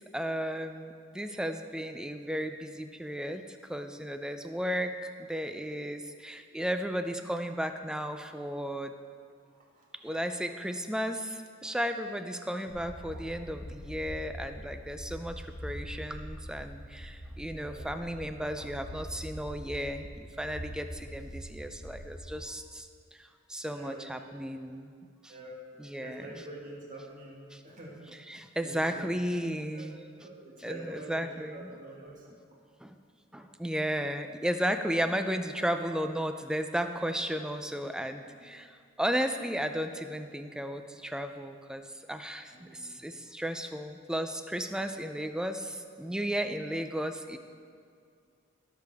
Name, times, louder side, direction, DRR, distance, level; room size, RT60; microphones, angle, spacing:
voice 1, 0.1-8.9 10.0-22.9 23.2-24.9 25.2-25.3 25.8-26.4 27.5-27.6 28.3-30.0 30.6-31.7 32.8-33.0 33.3-47.4, equal, 5° right, 8 dB, 0.4 m, -34 dB
voice 2, 9.7-10.5 13.1-13.2 17.5-17.9 23.6-24.5 25.3-25.6 26.0-28.0 28.6-29.3 29.7-29.9 30.2-32.6 38.3-38.4 42.5-43.0, right 1 dB, 40° right, -3 dB, 2.0 m, -47 dB
sound 1, 12.7-22.5, equal, 90° left, 1.8 m, -43 dB
17.0 x 6.6 x 3.5 m, 2.2 s
head